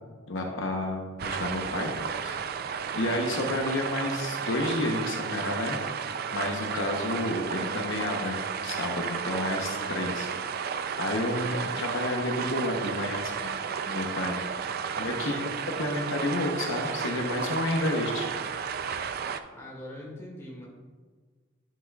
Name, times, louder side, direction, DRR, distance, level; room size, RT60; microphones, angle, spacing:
voice 1, 0.3-1.9 2.2-2.4 2.9-5.8 6.3-8.4 8.6-10.3 11.0-13.5 13.9-14.4 15.0-18.3, left 1 dB, 75° left, 2 dB, 0.8 m, -30 dB
sound 1, 1.2-19.4, right 6 dB, 50° right, 0.4 m, -33 dB
voice 2, 14.9-15.5 19.5-20.7, left 1 dB, 15° left, -4 dB, 1.9 m, -43 dB
10.0 x 6.0 x 2.3 m, 1.5 s
head